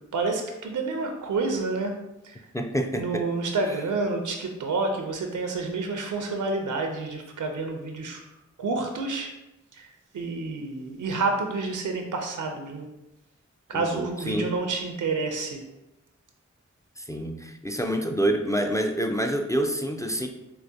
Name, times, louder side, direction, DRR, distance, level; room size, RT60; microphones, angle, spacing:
voice 1, 0.1-2.0 2.2-2.4 3.0-8.2 8.6-9.3 9.7-9.9 10.1-12.9 13.7-15.6, right 3 dB, 85° right, 3 dB, 0.5 m, -29 dB
voice 2, 2.5-3.3 13.7-14.5 17.0-20.3, right 1 dB, 10° left, 4 dB, 0.3 m, -27 dB
4.5 x 2.0 x 2.6 m, 0.93 s
cardioid pair, 40°, 30 cm